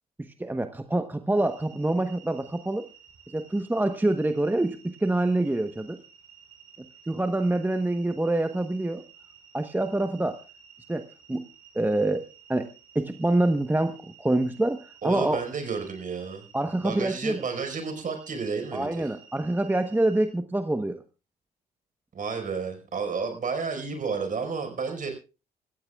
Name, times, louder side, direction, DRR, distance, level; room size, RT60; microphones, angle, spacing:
voice 1, 0.4-2.9 3.3-6.0 7.1-9.0 9.5-10.4 10.9-11.5 11.7-12.2 12.5-12.7 12.9-15.4 16.5-17.4 18.7-21.0, right 2 dB, 10° right, 8 dB, 1.1 m, -26 dB
sound 1, 1.4-20.3, right 7 dB, 85° right, 5.6 m, -54 dB
voice 2, 15.0-16.4 16.8-19.1 22.1-25.1, right 5 dB, 45° right, 5 dB, 5.0 m, -31 dB
26.0 x 15.0 x 2.4 m, 0.32 s
hypercardioid pair, 55°, 19 cm